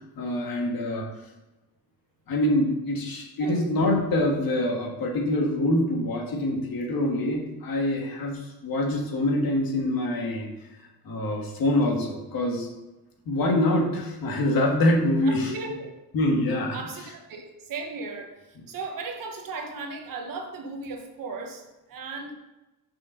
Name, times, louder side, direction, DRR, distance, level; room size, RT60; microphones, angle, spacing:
voice 1, 0.2-1.1 2.3-10.5 11.0-12.7 13.3-15.5 16.1-16.8, left 1 dB, 65° left, 0 dB, 1.7 m, -25 dB
voice 2, 15.2-15.9 16.7-18.3 18.7-22.3, right 3 dB, 55° right, 4 dB, 1.2 m, -36 dB
6.2 x 5.6 x 5.5 m, 1.0 s
wide cardioid pair, 170°, 39 cm